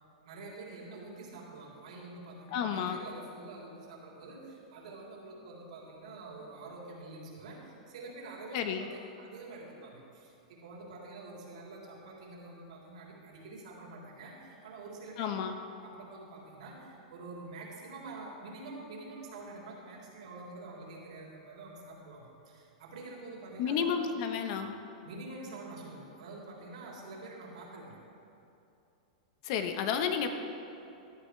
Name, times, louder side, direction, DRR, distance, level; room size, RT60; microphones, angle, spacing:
voice 1, 0.2-8.9 9.2-15.4 15.8-24.0 25.0-28.0, right 2 dB, 75° right, -3 dB, 3.6 m, -47 dB
voice 2, 2.5-3.0 8.5-8.9 15.2-15.6 23.6-24.7 29.4-30.3, left 7 dB, 55° left, 7 dB, 1.2 m, -31 dB
17.5 x 12.0 x 3.4 m, 2.8 s
hypercardioid pair, 125°, 4 cm